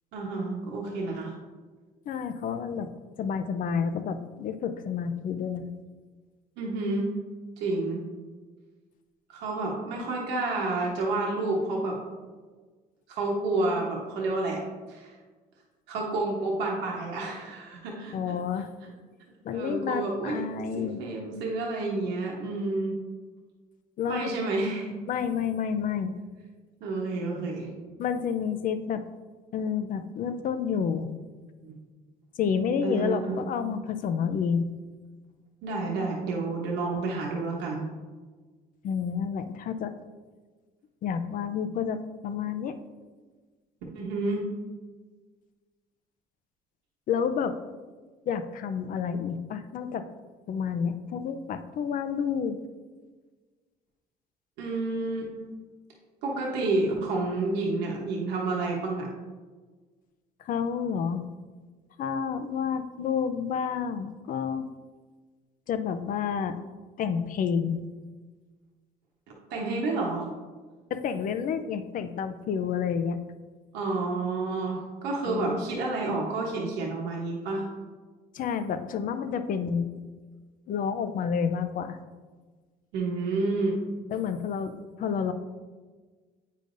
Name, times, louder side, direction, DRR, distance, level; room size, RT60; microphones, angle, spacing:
voice 1, 0.1-1.3 6.6-7.2 7.6-8.0 9.3-12.0 13.1-14.6 14.9-15.1 15.9-18.3 19.5-20.5 20.8-23.0 24.1-25.0 26.8-27.7 31.6-31.7 32.8-33.5 35.6-37.9 43.9-44.5 54.6-55.4 56.2-59.1 69.5-70.3 73.7-77.6 82.9-83.8, right 2 dB, 90° right, -2 dB, 1.1 m, -29 dB
voice 2, 2.1-2.9 3.2-5.7 18.1-18.7 19.4-21.0 24.0-24.3 25.1-26.1 28.0-29.0 29.5-31.1 32.4-34.7 38.8-39.9 41.0-42.8 47.1-47.6 48.3-50.1 50.5-52.6 60.4-61.2 62.0-64.7 65.7-66.6 67.0-67.8 70.9-73.2 75.2-75.6 78.3-79.9 80.7-82.0 84.1-85.3, left 7 dB, 55° left, 10 dB, 0.5 m, -29 dB
8.4 x 5.0 x 2.6 m, 1.4 s
cardioid pair, 110°, 17 cm